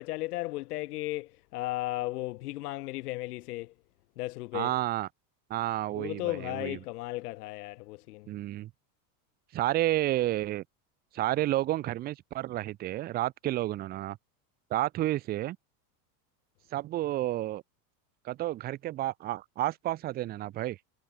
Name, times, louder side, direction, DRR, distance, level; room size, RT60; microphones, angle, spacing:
voice 1, 0.0-3.7 4.2-4.7 5.9-8.3, left 19 dB, 75° left, 4.0 m, -35 dB
voice 2, 4.5-5.1 5.5-6.8 8.3-8.7 9.5-10.6 11.1-14.2 14.7-15.6 16.7-17.6 18.2-20.8, right 15 dB, 20° right, 0.8 m, -30 dB
supercardioid pair, 175°, 46 cm